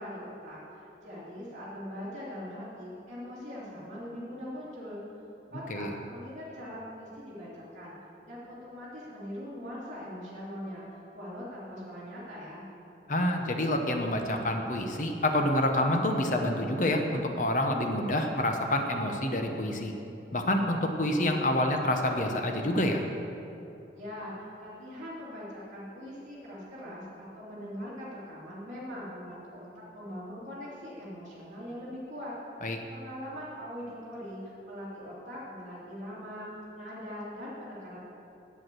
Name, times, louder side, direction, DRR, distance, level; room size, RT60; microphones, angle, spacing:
voice 1, 0.0-5.0 5.5-7.9 8.2-12.6 23.9-32.3 32.9-38.0, equal, 40° right, -10 dB, 2.9 m, -41 dB
voice 2, 13.1-19.9 20.3-23.0 32.6-32.8, left 1 dB, 45° left, 4 dB, 0.9 m, -27 dB
8.2 x 8.0 x 7.5 m, 2.9 s
head